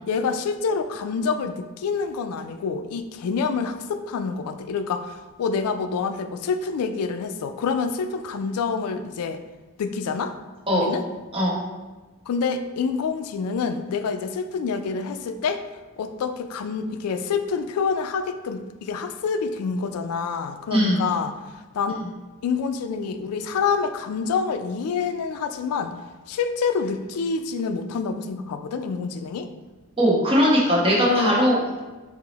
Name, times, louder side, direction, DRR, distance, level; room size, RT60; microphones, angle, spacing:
voice 1, 0.1-9.4 9.8-10.3 10.7-11.0 12.3-15.6 16.0-21.4 21.7-22.0 22.4-26.0 26.3-29.5 31.1-31.5, left 5 dB, 75° left, 8 dB, 0.3 m, -27 dB
voice 2, 20.7-21.0 30.0-31.8, equal, 25° right, -6 dB, 1.0 m, -20 dB
4.6 x 2.0 x 3.9 m, 1.2 s
head